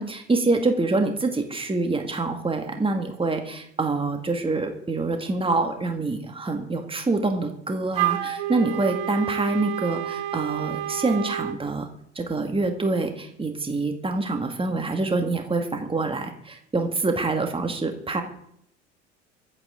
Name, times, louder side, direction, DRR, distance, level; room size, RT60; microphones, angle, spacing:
voice 1, 0.0-11.9 12.2-18.2, right 3 dB, 15° right, 5 dB, 2.2 m, -26 dB
Wind instrument woodwind instrument, 7.9-11.6, right 13 dB, 65° right, 1.4 m, -29 dB
24.0 x 8.4 x 3.9 m, 0.71 s
hypercardioid pair, 65°, 35 cm